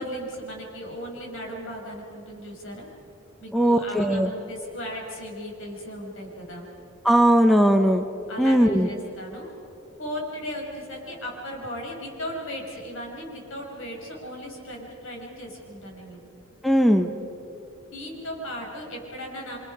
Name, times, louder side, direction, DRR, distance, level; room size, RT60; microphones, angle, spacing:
voice 1, 0.0-2.9 3.4-6.7 8.3-9.5 10.0-16.2 17.9-19.6, equal, 70° left, 0 dB, 5.6 m, -36 dB
voice 2, 3.5-4.3 7.0-8.0 8.4-8.9 16.6-17.1, equal, ahead, 6 dB, 0.8 m, -19 dB
29.0 x 25.5 x 5.5 m, 2.8 s
head